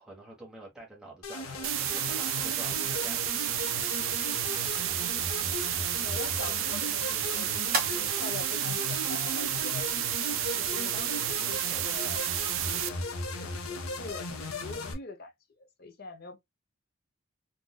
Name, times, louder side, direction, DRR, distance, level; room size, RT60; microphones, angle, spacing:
voice 1, 0.0-4.2, right 2 dB, 5° right, 1.3 m, -48 dB
sound 1, 1.2-14.9, left 3 dB, 80° left, 0.7 m, -37 dB
sound 2, 1.6-12.9, right 14 dB, 65° right, 0.3 m, -31 dB
sound 3, 4.2-11.2, right 4 dB, 40° right, 1.1 m, -41 dB
voice 2, 6.0-7.5 7.9-9.9 10.6-12.2 12.6-13.1 13.4-15.3 15.8-16.4, left 3 dB, 45° left, 0.6 m, -44 dB
3.8 x 2.6 x 2.2 m
head